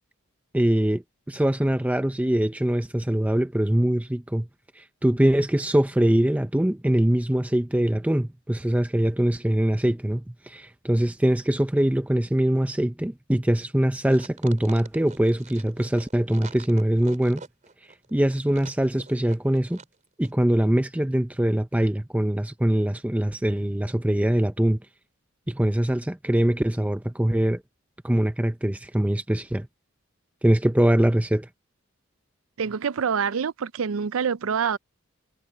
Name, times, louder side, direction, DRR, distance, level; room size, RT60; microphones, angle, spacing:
voice 1, 0.5-4.5 4.8-17.4 18.1-19.8 20.2-24.8 25.5-27.6 28.0-29.7 30.4-31.5, right 1 dB, 5° right, 0.6 m, -23 dB
sound 1, 14.1-19.9 20.2-20.3, right 4 dB, 40° right, 3.9 m, -45 dB
voice 2, 32.6-34.8, right 6 dB, 75° right, 0.5 m, -26 dB
head